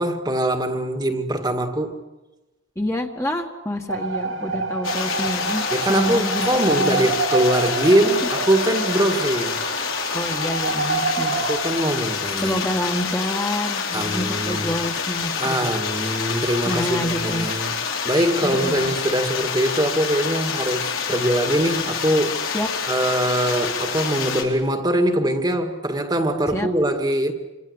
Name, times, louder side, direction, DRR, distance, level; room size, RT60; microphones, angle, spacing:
voice 1, 0.0-2.0 5.7-9.6 11.3-12.6 13.9-14.8 15.4-22.5 22.9-27.3, right 1 dB, 20° right, 1.9 m, -22 dB
voice 2, 2.8-5.6 5.9-7.1 10.1-11.4 12.4-15.7 16.7-17.5 18.4-18.9 22.5-22.7 26.5-26.7, left 1 dB, 15° left, 1.9 m, -28 dB
sound 1, 3.9-11.6, right 3 dB, 80° right, 3.7 m, -27 dB
sound 2, 4.8-24.4, left 6 dB, 90° left, 4.8 m, -27 dB
29.0 x 25.5 x 8.1 m
head